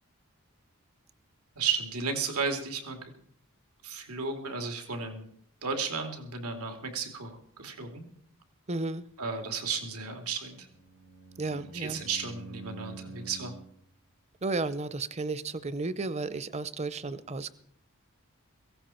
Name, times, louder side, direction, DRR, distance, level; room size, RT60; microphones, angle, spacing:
voice 1, 1.6-3.1 3.8-5.3 5.6-8.0 9.2-10.7 11.5-13.5, right 5 dB, 90° right, 4 dB, 2.7 m, -34 dB
voice 2, 8.7-9.1 11.4-12.0 14.4-17.5, right 3 dB, 30° right, 15 dB, 0.6 m, -33 dB
Bowed string instrument, 10.6-13.8, right 3 dB, 70° right, 4.3 m, -47 dB
17.0 x 16.0 x 4.4 m, 0.65 s
head